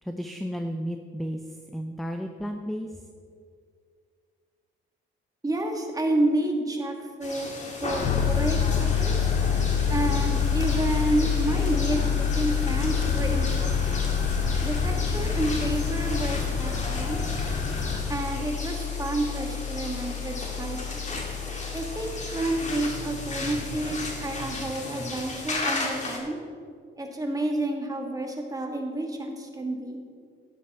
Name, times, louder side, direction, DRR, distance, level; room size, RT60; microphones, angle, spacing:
voice 1, 0.0-2.9, equal, ahead, 5 dB, 0.6 m, -33 dB
voice 2, 5.4-7.5 7.8-9.3 9.9-14.0 14.6-17.2 18.1-21.2 21.7-26.4 27.0-30.0, right 1 dB, 20° right, 2 dB, 1.8 m, -30 dB
sound 1, 7.2-26.2, left 2 dB, 35° left, 2.2 m, -35 dB
sound 2, 7.9-18.0, left 3 dB, 60° left, 2.0 m, -32 dB
Piano, 8.0-24.7, left 9 dB, 85° left, 0.7 m, -29 dB
12.5 x 10.0 x 3.6 m, 2.1 s
cardioid pair, 90°, 20 cm